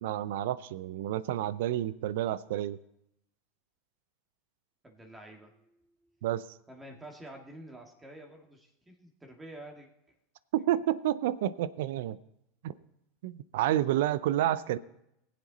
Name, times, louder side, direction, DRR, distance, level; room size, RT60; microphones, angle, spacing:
voice 1, 0.0-2.8 6.2-6.4 10.5-12.2 12.6-12.7 13.2-14.8, right 13 dB, 70° right, 18 dB, 0.5 m, -29 dB
voice 2, 4.8-5.8 6.7-10.1, right 1 dB, 15° right, 2 dB, 2.1 m, -49 dB
20.5 x 7.5 x 4.1 m, 0.80 s
hypercardioid pair, 85°, 0 cm